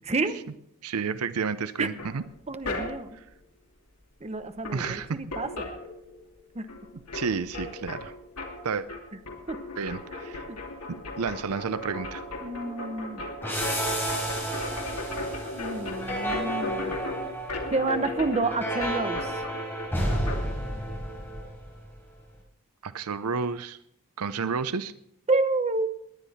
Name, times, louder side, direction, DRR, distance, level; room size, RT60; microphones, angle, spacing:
voice 1, 0.8-2.2 3.1-3.2 4.7-5.2 7.1-8.1 8.6-8.9 9.8-10.5 10.9-12.2 22.8-23.8 24.2-24.9, right 5 dB, 75° right, 14 dB, 0.6 m, -31 dB
sound 1, 2.0-3.2 4.3-4.4 4.6-6.4 6.7-20.4, left 2 dB, 85° left, 2.7 m, -37 dB
voice 2, 2.5-3.2 4.2-5.7 6.5-6.7 9.5-9.6 10.5-10.6 12.4-13.2 15.5-17.0 17.7-19.3 25.3-25.9, right 3 dB, 30° right, 9 dB, 0.9 m, -29 dB
sound 2, 13.4-21.9, right 1 dB, 10° left, 4.5 m, -32 dB
20.5 x 10.0 x 4.2 m, 0.73 s
head